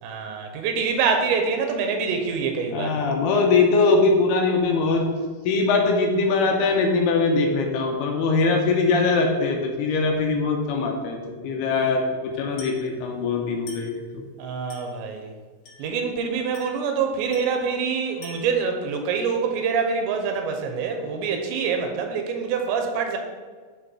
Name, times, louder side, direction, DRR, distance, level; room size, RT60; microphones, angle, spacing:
voice 1, 0.0-2.9 14.4-15.3 15.8-23.2, right 5 dB, 90° right, 4 dB, 3.2 m, -25 dB
voice 2, 2.7-5.1 5.5-11.2 11.4-14.2, left 3 dB, 75° left, 2 dB, 2.8 m, -21 dB
Glass, 12.6-12.9 13.7-14.0 14.7-15.0 15.6-16.0 16.5-16.9 17.3-17.7 18.2-18.6, left 4 dB, 55° left, 3.8 m, -44 dB
12.0 x 4.5 x 4.5 m, 1.5 s
omnidirectional pair, 5.0 m